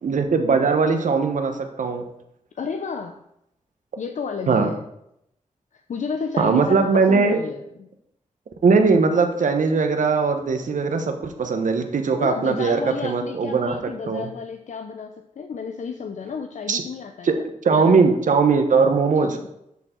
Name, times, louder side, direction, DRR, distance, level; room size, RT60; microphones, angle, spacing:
voice 1, 0.0-2.0 4.5-4.7 6.4-7.4 8.6-13.7 14.0-14.3 16.7-16.8 17.2-17.3 17.6-19.4, right 4 dB, 75° right, 6 dB, 1.1 m, -20 dB
voice 2, 2.5-3.2 4.0-4.8 5.7-7.9 12.2-18.0 19.2-19.5, left 5 dB, 65° left, 6 dB, 0.6 m, -32 dB
10.5 x 4.4 x 4.5 m, 0.79 s
cardioid pair, 65°, 13 cm